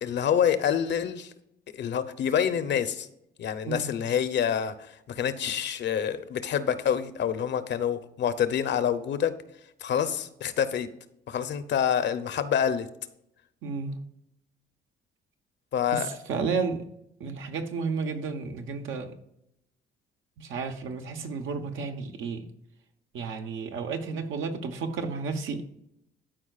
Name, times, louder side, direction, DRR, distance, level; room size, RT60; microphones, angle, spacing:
voice 1, 0.0-1.3 1.7-3.1 3.4-4.7 5.1-9.3 9.8-10.9 11.3-12.9 15.7-16.1, left 8 dB, 65° left, 0.8 m, -27 dB
voice 2, 13.6-13.9 15.9-16.9 17.2-19.1 20.4-22.5 23.1-25.6, right 5 dB, 80° right, 1.0 m, -32 dB
12.5 x 4.6 x 2.4 m
cardioid pair, 90°, 20 cm